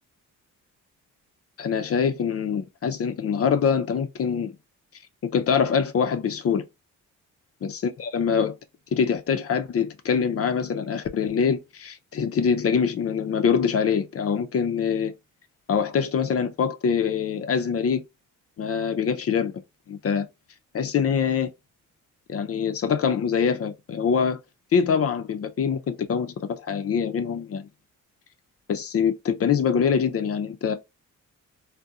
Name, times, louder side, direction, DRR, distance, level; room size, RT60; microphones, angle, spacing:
voice 1, 1.6-4.6 5.3-6.6 7.6-8.6 8.9-15.1 15.7-18.0 18.6-19.6 19.9-20.3 20.7-21.5 22.3-24.4 24.7-27.7 28.7-30.7, left 6 dB, 45° left, 0.5 m, -24 dB
2.7 x 2.2 x 2.3 m
cardioid pair, 75°, 33 cm